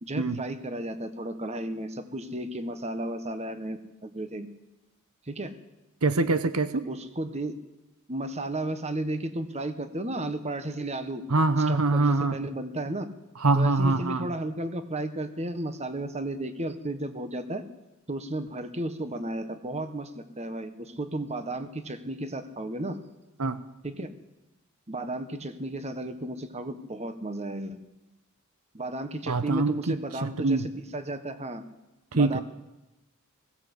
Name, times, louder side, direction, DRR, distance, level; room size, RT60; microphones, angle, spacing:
voice 1, 0.0-4.5 5.3-5.6 6.8-7.5 8.1-11.2 11.7-13.1 13.5-17.6 18.1-23.0 23.8-24.1 24.9-27.8 28.7-30.6 30.9-31.6 32.1-32.4, right 1 dB, 30° right, 9 dB, 1.5 m, -33 dB
voice 2, 6.0-6.8 11.3-12.4 13.4-14.3 23.4-23.6 29.3-30.7 32.1-32.4, right 3 dB, 85° right, 12 dB, 1.0 m, -24 dB
20.0 x 16.5 x 8.3 m, 0.99 s
head